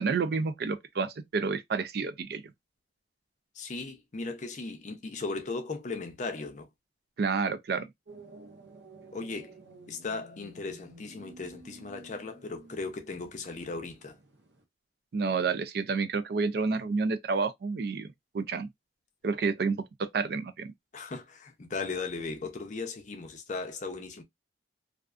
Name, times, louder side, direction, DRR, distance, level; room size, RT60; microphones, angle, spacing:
voice 1, 0.0-2.4 7.2-7.9 15.1-18.7 19.2-20.7, right 4 dB, 55° right, 0.3 m, -29 dB
voice 2, 3.5-6.7 9.1-9.5 9.9-14.2 20.9-24.2, left 3 dB, 40° left, 0.5 m, -37 dB
sound 1, 8.1-14.6, right 2 dB, 75° right, 0.8 m, -52 dB
2.4 x 2.3 x 2.3 m
head